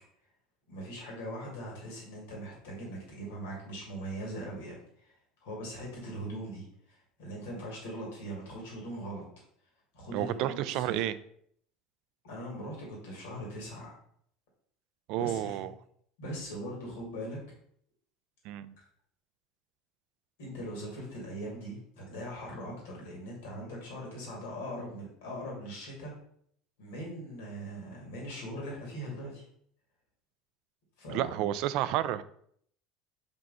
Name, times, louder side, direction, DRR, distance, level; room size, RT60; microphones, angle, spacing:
voice 1, 0.7-9.2 9.9-11.0 12.2-13.9 15.2-15.6 16.2-17.4 20.4-26.1 26.8-29.4 31.0-31.4, equal, 85° left, -2 dB, 2.4 m, -41 dB
voice 2, 10.1-11.2 15.1-15.7 18.4-18.7 31.1-32.2, right 13 dB, 65° right, 15 dB, 0.4 m, -31 dB
5.2 x 4.6 x 4.1 m, 0.66 s
hypercardioid pair, 90°, 0 cm